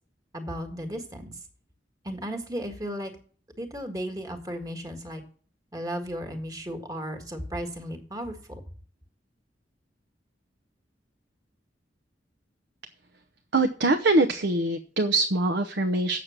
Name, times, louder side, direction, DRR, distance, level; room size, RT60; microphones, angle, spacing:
voice 1, 0.3-1.3 2.0-3.1 3.6-5.2 5.7-8.6, equal, 20° right, 5 dB, 1.7 m, -35 dB
voice 2, 13.5-16.2, right 2 dB, 65° right, 8 dB, 0.8 m, -23 dB
8.4 x 6.7 x 7.3 m, 0.43 s
head